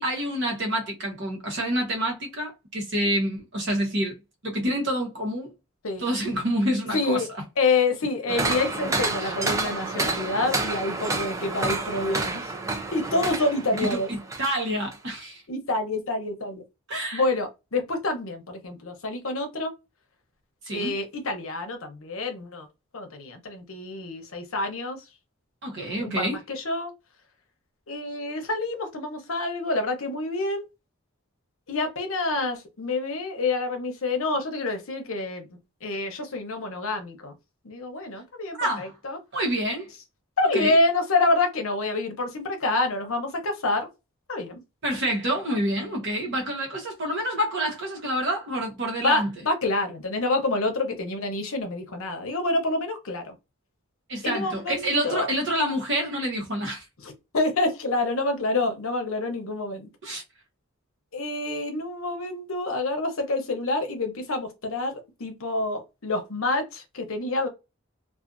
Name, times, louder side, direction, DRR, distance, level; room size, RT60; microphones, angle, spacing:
voice 1, 0.0-4.1 4.4-5.5 6.0-7.2 9.2-9.3 13.8-15.4 16.9-17.2 20.7-20.9 25.6-26.4 38.6-38.9 39.3-39.9 40.5-40.8 44.8-49.3 54.1-56.8 60.0-60.2, right 1 dB, 55° right, 1.0 m, -27 dB
voice 2, 6.9-7.3 7.6-12.5 12.9-14.1 15.5-16.6 17.1-19.7 20.7-22.7 22.9-25.0 25.8-26.9 27.9-30.6 31.7-35.5 35.8-37.3 37.6-39.2 40.4-43.9 44.3-44.6 49.0-53.3 54.2-55.3 57.0-59.9 61.1-67.5, left 2 dB, 70° left, 0.8 m, -27 dB
sound 1, 8.3-14.6 14.9-15.0, right 3 dB, 15° right, 0.3 m, -29 dB
2.5 x 2.4 x 2.5 m
head